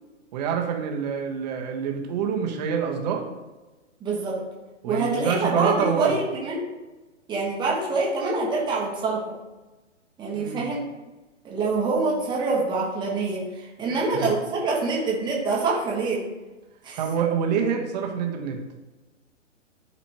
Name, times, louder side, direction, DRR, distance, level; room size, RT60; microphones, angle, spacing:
voice 1, 0.3-3.2 4.8-6.1 10.3-10.7 13.9-14.3 17.0-18.6, right 7 dB, 35° right, 2 dB, 1.1 m, -26 dB
voice 2, 4.0-4.4 4.9-6.6 7.3-9.4 10.2-10.8 11.4-16.2 16.8-17.0, right 3 dB, 10° right, -3 dB, 1.2 m, -25 dB
10.5 x 4.1 x 2.9 m, 1.1 s
hypercardioid pair, 130°, 37 cm